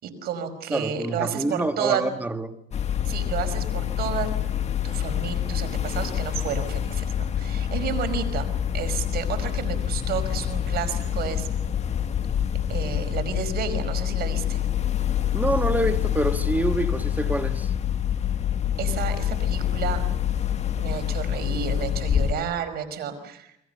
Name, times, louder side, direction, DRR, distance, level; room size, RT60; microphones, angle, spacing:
voice 1, 0.0-2.0 3.1-4.3 4.8-8.5 8.7-11.5 12.7-14.6 18.8-20.0 20.8-23.6, right 8 dB, 65° right, 5.3 m, -31 dB
voice 2, 0.7-2.6 15.3-17.7, right 2 dB, 10° right, 1.9 m, -26 dB
sound 1, 2.7-22.3, left 10 dB, 40° left, 1.9 m, -26 dB
30.0 x 22.0 x 6.9 m
cardioid pair, 110°, 17 cm